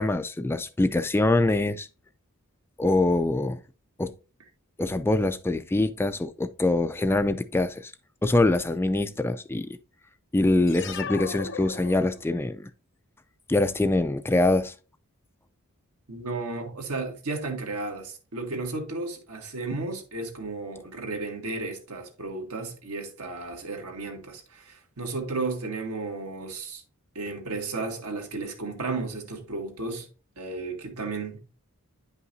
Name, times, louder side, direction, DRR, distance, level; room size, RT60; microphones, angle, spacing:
voice 1, 0.0-1.9 2.8-3.6 4.0-4.1 4.8-7.9 8.2-9.7 10.3-12.7 13.5-14.7, left 2 dB, 10° left, 0.3 m, -24 dB
sound 1, 10.7-12.5, left 6 dB, 55° left, 0.7 m, -37 dB
voice 2, 16.1-26.8 27.2-30.1 30.4-31.4, right 3 dB, 75° right, 1.9 m, -33 dB
9.9 x 5.5 x 2.7 m
head